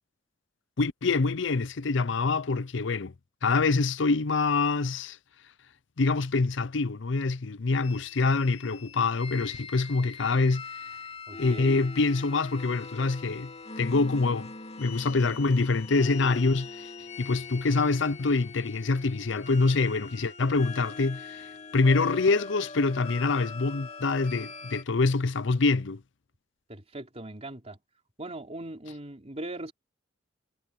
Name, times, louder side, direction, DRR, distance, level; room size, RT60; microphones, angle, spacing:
voice 1, 0.8-3.1 3.4-5.2 6.0-10.6 11.4-13.5 13.8-14.5 14.8-16.9 17.2-21.5 21.7-26.0, left 3 dB, 70° left, 0.7 m, -25 dB
sound 1, 7.8-24.8, left 4 dB, 35° left, 2.9 m, -42 dB
voice 2, 11.3-11.8 26.7-27.8 28.2-29.7, right 1 dB, 35° right, 3.5 m, -40 dB
head